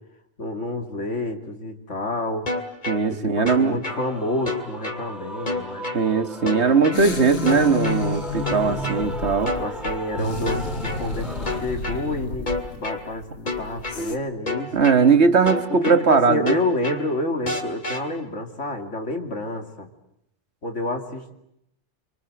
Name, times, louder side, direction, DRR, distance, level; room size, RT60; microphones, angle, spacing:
voice 1, 0.4-2.5 3.1-5.9 8.6-9.1 9.6-10.6 11.0-14.9 15.7-19.9 20.6-21.3, left 2 dB, 85° left, 4 dB, 3.0 m, -29 dB
sound 1, 2.5-3.0 3.5-4.0 4.5-5.0 5.5-6.0 6.5-7.0 7.5-8.0 8.5-9.0 9.5-10.0 10.5-11.0 11.5-12.0 12.5-13.0 13.5-14.0 14.5-15.0 15.5-16.0 16.5-17.0 17.5-18.0, left 2 dB, 40° left, 2.8 m, -28 dB
voice 2, 2.9-3.8 5.9-9.5 14.7-16.6, right 5 dB, 65° right, 8 dB, 1.8 m, -19 dB
Male singing / Female singing / Musical instrument, 3.9-11.6, equal, ahead, 2.1 m, -37 dB
sound 2, 6.9-14.2, left 3 dB, 70° left, 2.0 m, -30 dB
27.5 x 25.0 x 8.0 m, 0.79 s
omnidirectional pair, 1.2 m